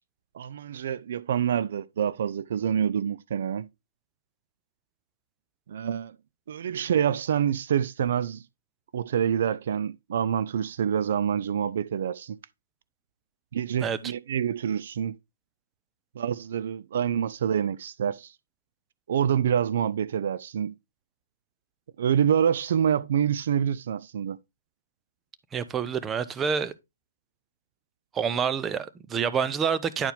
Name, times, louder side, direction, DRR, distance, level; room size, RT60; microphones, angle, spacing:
voice 1, 0.3-3.7 5.7-6.1 6.5-8.4 8.9-12.4 13.5-15.1 16.2-18.3 19.1-20.7 22.0-24.4, right 8 dB, 60° right, 0.4 m, -26 dB
voice 2, 25.5-26.7 28.1-30.1, right 7 dB, 15° right, 0.6 m, -27 dB
10.5 x 4.6 x 3.4 m
hypercardioid pair, 130°, 0 cm